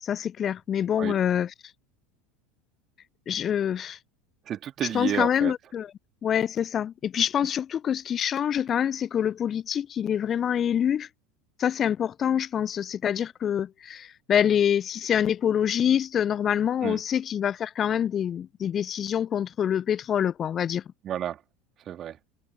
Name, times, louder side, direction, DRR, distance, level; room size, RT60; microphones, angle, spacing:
voice 1, 0.0-1.5 3.3-4.0 4.9-5.9 6.2-11.1 11.6-20.8, left 9 dB, 30° left, 0.3 m, -26 dB
voice 2, 4.5-5.5 16.8-17.0 21.0-21.4 21.9-22.2, right 10 dB, 35° right, 2.4 m, -31 dB
figure-of-eight pair, 75°, 0 cm